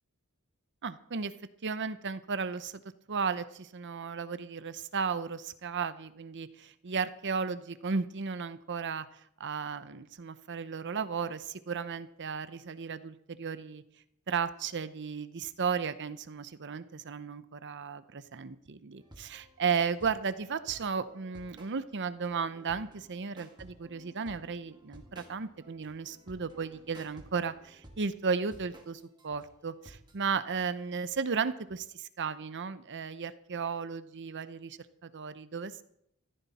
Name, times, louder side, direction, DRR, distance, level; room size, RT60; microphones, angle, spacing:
voice 1, 0.8-1.3 1.6-2.8 3.1-9.1 9.4-13.8 14.3-35.8, right 5 dB, 55° right, 13 dB, 0.7 m, -34 dB
sound 1, 19.0-30.2, right 1 dB, 20° right, 2.1 m, -55 dB
15.5 x 14.0 x 4.2 m, 0.74 s
head